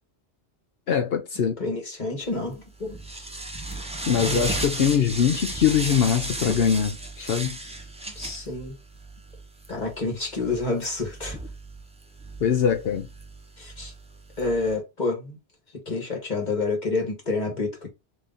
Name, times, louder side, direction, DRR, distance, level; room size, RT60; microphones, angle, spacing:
voice 1, 0.9-1.6 4.1-7.6 12.4-13.1, left 8 dB, 65° left, 0.8 m, -22 dB
voice 2, 1.6-3.3 4.2-4.4 8.1-8.7 9.7-11.4 13.6-13.9 14.4-15.4 15.7-17.9, left 3 dB, 40° left, 1.5 m, -29 dB
sound 1, 2.3-14.8, right 1 dB, 10° right, 0.5 m, -35 dB
3.9 x 3.1 x 3.5 m
omnidirectional pair, 1.2 m